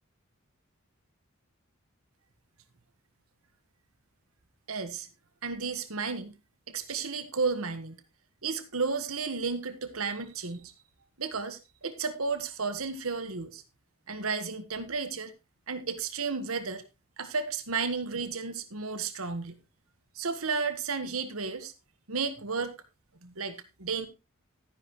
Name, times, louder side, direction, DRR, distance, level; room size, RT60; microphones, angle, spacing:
voice 1, 4.7-5.1 5.4-6.3 6.7-8.0 8.4-10.7 11.2-13.6 14.1-15.3 15.7-16.8 17.2-19.6 20.1-21.7 22.1-22.7 23.2-24.1, right 4 dB, 85° right, 8 dB, 1.5 m, -33 dB
12.5 x 10.0 x 3.1 m, 0.26 s
head